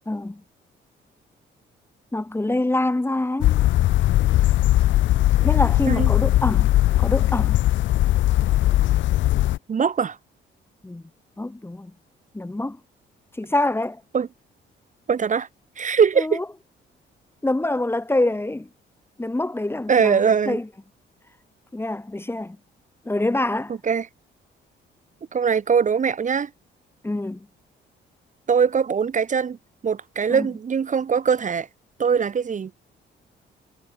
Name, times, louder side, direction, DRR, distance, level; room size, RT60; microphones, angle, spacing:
voice 1, 0.1-0.4 2.1-3.6 5.4-7.6 10.8-11.0 11.4-11.9 12.3-12.8 13.4-14.0 16.2-16.4 17.4-18.7 19.2-20.7 21.7-22.6 23.0-23.8 27.0-27.5 30.3-30.5, left 2 dB, 10° left, 1.6 m, -25 dB
sound 1, 3.4-9.6, left 15 dB, 70° left, 0.5 m, -19 dB
voice 2, 9.7-10.2 14.1-14.3 15.1-15.5 15.8-16.4 19.9-20.6 23.8-24.1 25.3-26.5 28.5-29.6 29.8-31.7 32.0-32.7, right 6 dB, 40° right, 1.2 m, -21 dB
cardioid pair, 90°, 20 cm